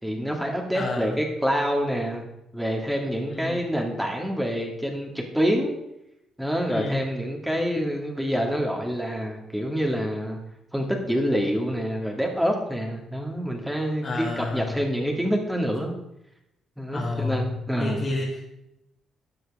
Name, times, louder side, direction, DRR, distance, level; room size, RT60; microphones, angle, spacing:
voice 1, 0.0-2.2 2.5-5.7 6.4-10.4 10.7-15.9 16.8-18.1, equal, 5° right, 1 dB, 2.3 m, -27 dB
voice 2, 0.7-1.2 3.3-3.7 6.7-7.1 14.0-14.8 15.1-15.2 16.9-18.6, left 3 dB, 40° left, -2 dB, 1.9 m, -30 dB
12.5 x 8.0 x 3.7 m, 0.85 s
cardioid pair, 90°, 0 cm